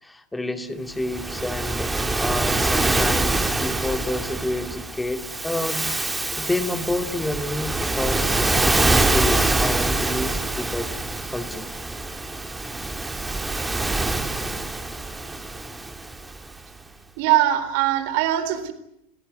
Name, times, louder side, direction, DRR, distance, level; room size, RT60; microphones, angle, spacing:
voice 1, 0.0-10.9 11.3-11.7, left 1 dB, 5° left, 7 dB, 2.4 m, -29 dB
Waves surf, 1.0-16.5, right 2 dB, 10° right, 2.3 m, -25 dB
voice 2, 17.2-18.7, right 13 dB, 55° right, 10 dB, 3.7 m, -21 dB
30.0 x 17.5 x 9.7 m, 0.82 s
figure-of-eight pair, 85°, 0 cm